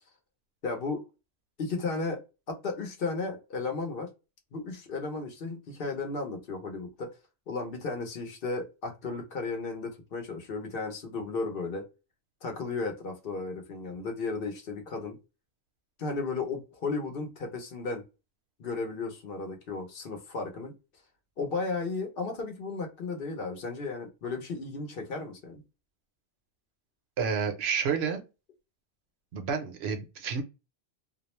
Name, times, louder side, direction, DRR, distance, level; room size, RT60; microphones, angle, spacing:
voice 1, 0.6-1.1 1.6-2.2 2.5-4.1 4.5-7.1 7.5-11.9 12.4-15.2 16.0-18.0 18.6-20.7 21.4-25.6, left 3 dB, 60° left, 0.9 m, -34 dB
voice 2, 27.2-28.2 29.3-30.4, right 6 dB, 75° right, 0.9 m, -30 dB
2.4 x 2.0 x 2.9 m
omnidirectional pair, 1.1 m